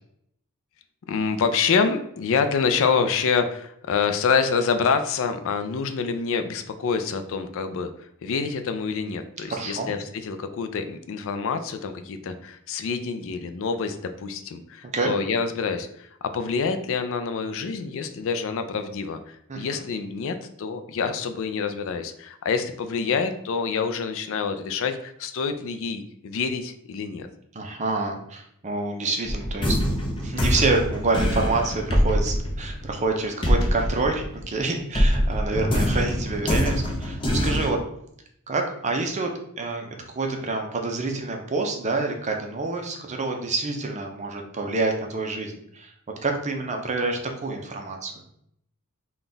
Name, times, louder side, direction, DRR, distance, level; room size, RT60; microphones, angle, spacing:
voice 1, 1.1-7.9 8.2-27.3, left 5 dB, 60° left, 8 dB, 0.4 m, -27 dB
voice 2, 9.5-9.9 14.8-15.1 19.5-19.6 27.5-37.8 38.5-39.9 40.2-45.9 46.2-48.1, right 3 dB, 30° right, 2 dB, 0.6 m, -27 dB
sound 1, 29.2-34.6 34.9-37.7, equal, 20° left, 0.6 m, -24 dB
sound 2, 35.5-37.4, left 1 dB, 10° right, 1.1 m, -36 dB
3.8 x 2.3 x 3.8 m, 0.72 s
head